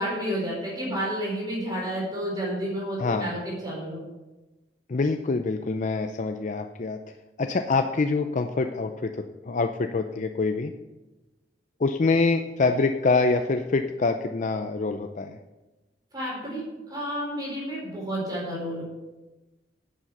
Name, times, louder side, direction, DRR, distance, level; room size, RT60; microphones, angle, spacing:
voice 1, 0.0-4.0 16.1-18.8, equal, 25° right, -4 dB, 4.3 m, -30 dB
voice 2, 4.9-7.0 7.4-10.7 11.8-15.4, left 3 dB, 45° left, 6 dB, 0.5 m, -25 dB
10.0 x 7.4 x 6.6 m, 1.1 s
head